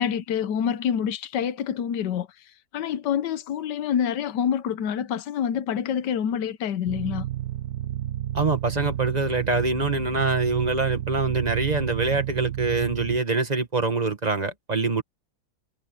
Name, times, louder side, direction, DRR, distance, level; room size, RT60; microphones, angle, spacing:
voice 1, 0.0-7.3, left 8 dB, 85° left, 1.5 m, -27 dB
sound 1, 6.9-13.2, right 12 dB, 70° right, 1.5 m, -31 dB
voice 2, 8.3-15.0, right 3 dB, 25° right, 1.5 m, -24 dB
omnidirectional pair, 1.8 m